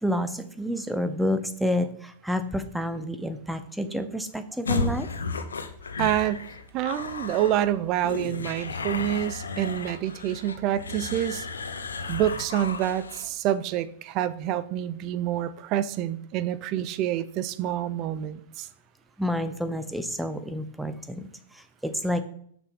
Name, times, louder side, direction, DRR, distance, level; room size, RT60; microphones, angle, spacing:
voice 1, 0.0-5.1 19.2-22.2, equal, ahead, 10 dB, 0.9 m, -29 dB
sound 1, 4.7-13.3, left 4 dB, 90° left, 0.9 m, -33 dB
voice 2, 6.0-6.5 6.7-11.5 12.1-18.7, right 12 dB, 40° right, 15 dB, 0.6 m, -27 dB
6.6 x 6.1 x 5.9 m, 0.64 s
hypercardioid pair, 115°, 0 cm